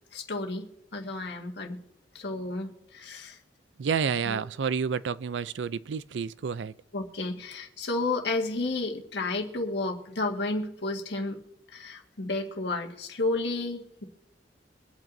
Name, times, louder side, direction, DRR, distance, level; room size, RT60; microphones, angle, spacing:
voice 1, 0.1-1.8 2.1-3.4 4.3-4.4 6.9-11.4 11.7-14.0, left 2 dB, 70° left, 1.7 m, -32 dB
voice 2, 3.8-6.7, right 6 dB, 75° right, 0.4 m, -29 dB
24.5 x 8.9 x 2.7 m
head